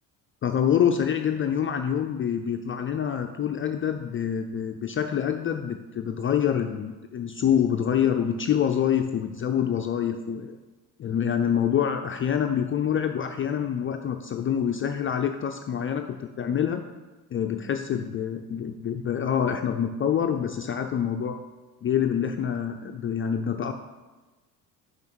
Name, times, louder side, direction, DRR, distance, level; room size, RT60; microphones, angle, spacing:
voice 1, 0.4-10.6 11.0-16.8 17.3-21.4 21.8-23.7, left 8 dB, 30° left, 5 dB, 0.4 m, -26 dB
5.5 x 5.4 x 6.2 m, 1.2 s
supercardioid pair, 90°, 42 cm